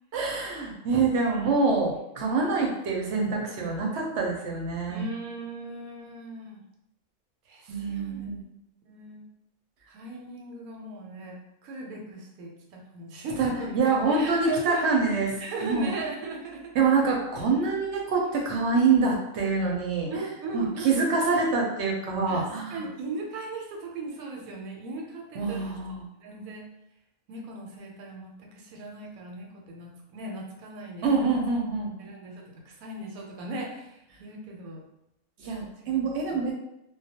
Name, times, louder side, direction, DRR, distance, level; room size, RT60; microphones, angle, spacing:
voice 1, 0.1-5.0 7.7-8.4 13.4-15.3 15.6-15.9 16.7-20.1 20.5-22.8 25.3-26.0 31.0-31.9 35.4-36.5, right 4 dB, 65° right, -1 dB, 0.8 m, -25 dB
voice 2, 4.9-6.6 7.5-8.3 8.8-9.3 9.9-16.7 18.7-19.1 20.1-21.3 22.3-25.6 26.2-26.7 27.3-31.2 32.0-34.8 35.8-36.0 36.3-36.4, right 2 dB, 85° right, 0 dB, 1.0 m, -38 dB
2.3 x 2.1 x 2.7 m, 0.85 s
omnidirectional pair, 1.4 m